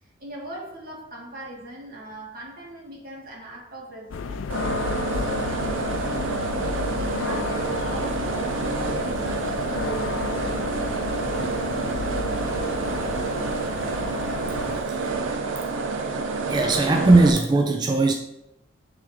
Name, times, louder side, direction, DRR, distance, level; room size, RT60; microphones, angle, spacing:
voice 1, 0.0-4.7 5.1-10.7, right 1 dB, 50° right, -3 dB, 1.9 m, -40 dB
sound 1, 4.1-14.8, left 4 dB, 80° left, 0.4 m, -32 dB
sound 2, 4.5-17.3, right 3 dB, 85° right, 0.7 m, -28 dB
voice 2, 14.9-15.2 16.5-18.1, right 2 dB, 20° right, 4 dB, 0.3 m, -19 dB
9.0 x 3.3 x 3.5 m, 0.83 s
head